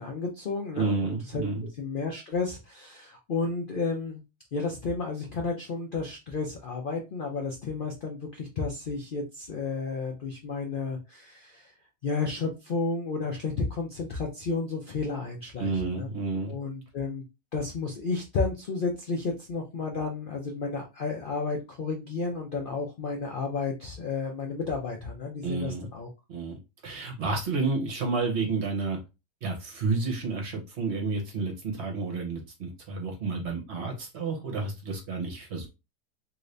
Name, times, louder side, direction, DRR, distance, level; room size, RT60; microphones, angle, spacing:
voice 1, 0.0-1.4 1.8-4.2 4.5-11.7 12.0-16.1 16.5-17.2 17.5-26.1, left 4 dB, 75° left, 2 dB, 0.4 m, -32 dB
voice 2, 0.8-1.7 15.6-16.5 25.4-25.9 26.3-29.0 29.4-35.7, right 3 dB, 50° right, 1 dB, 1.0 m, -30 dB
2.9 x 2.6 x 3.2 m, 0.26 s
omnidirectional pair, 1.7 m